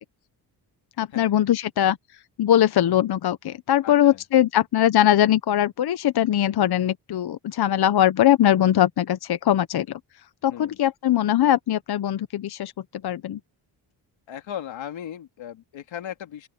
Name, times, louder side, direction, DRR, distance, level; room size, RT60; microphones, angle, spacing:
voice 1, 1.0-2.0 2.4-10.0 10.4-13.4, left 11 dB, 60° left, 0.8 m, -21 dB
voice 2, 3.8-4.2 10.5-10.8 14.3-16.5, left 10 dB, 90° left, 2.5 m, -37 dB
open air
cardioid pair, 95°, 44 cm